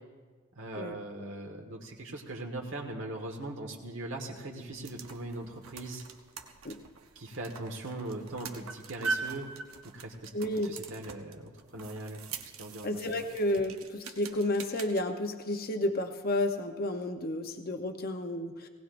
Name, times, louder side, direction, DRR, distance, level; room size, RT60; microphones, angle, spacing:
voice 1, 0.5-6.0 7.1-9.5 9.9-10.3 10.6-13.0, right 2 dB, 60° right, 1 dB, 1.5 m, -40 dB
sound 1, 4.6-15.0, right 4 dB, 80° right, 1.0 m, -42 dB
voice 2, 10.3-10.8 12.8-18.7, left 1 dB, 45° left, 5 dB, 0.8 m, -31 dB
19.0 x 18.0 x 2.6 m, 1.4 s
head